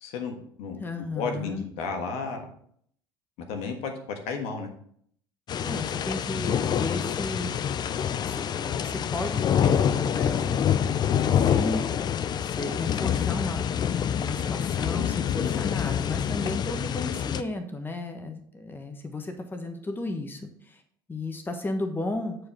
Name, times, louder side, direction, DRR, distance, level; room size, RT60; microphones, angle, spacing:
voice 1, 0.0-0.8 1.1-2.5 3.5-4.7, left 5 dB, 60° left, 4 dB, 1.4 m, -33 dB
voice 2, 0.8-1.7 5.6-7.6 7.9-10.6 11.1-11.9 12.4-13.8 14.2-20.8 21.1-22.4, left 2 dB, 15° left, 6 dB, 1.2 m, -34 dB
sound 1, 5.5-17.4, left 8 dB, 35° left, 0.5 m, -26 dB
8.9 x 4.9 x 4.3 m, 0.63 s
figure-of-eight pair, 65°, 12 cm